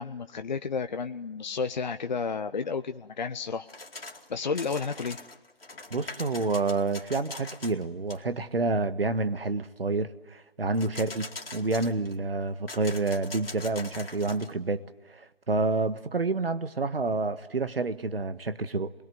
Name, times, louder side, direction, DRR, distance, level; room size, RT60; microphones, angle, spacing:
voice 1, 0.0-3.7 4.3-5.2, left 5 dB, 45° left, 0.8 m, -31 dB
sound 1, 3.7-4.3 4.6-7.8 8.1-8.2 10.7-12.2 12.7-14.5, left 2 dB, 70° left, 2.5 m, -42 dB
voice 2, 5.9-14.8 15.1-18.9, right 3 dB, 70° right, 1.6 m, -28 dB
29.0 x 21.5 x 8.0 m
figure-of-eight pair, 150°, 30 cm